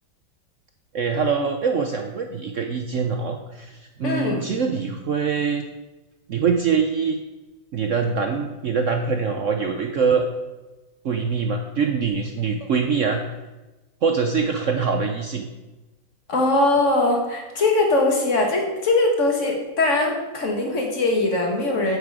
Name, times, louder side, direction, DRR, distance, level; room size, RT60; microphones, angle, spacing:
voice 1, 0.9-5.6 6.3-7.2 7.7-10.2 11.0-13.2 14.0-15.5, right 5 dB, 70° right, 4 dB, 0.7 m, -23 dB
voice 2, 4.0-4.4 16.3-22.0, left 2 dB, 40° left, 1 dB, 1.9 m, -21 dB
8.5 x 8.0 x 4.9 m, 1.1 s
omnidirectional pair, 2.1 m